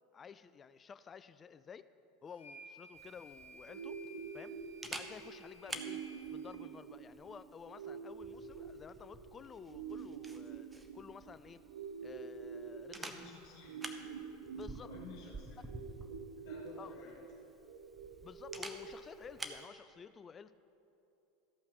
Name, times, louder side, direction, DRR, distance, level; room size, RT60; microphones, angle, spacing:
voice 1, 0.1-1.9 2.2-4.0 4.3-4.6 4.9-6.0 6.3-11.6 12.0-13.1 14.5-14.9 16.8-17.0 18.2-20.6, left 6 dB, 25° left, 14 dB, 0.3 m, -52 dB
sound 1, 2.3-6.6, equal, 85° left, 1.1 m, -56 dB
Camera, 3.0-19.7, right 2 dB, 15° right, 0.8 m, -51 dB
sound 2, 3.7-19.7, right 6 dB, 75° right, 0.7 m, -47 dB
voice 2, 13.0-13.8 14.8-15.6 16.4-17.2, left 4 dB, 60° left, -6 dB, 1.8 m, -53 dB
14.0 x 5.6 x 5.8 m, 2.9 s
figure-of-eight pair, 80°, 0 cm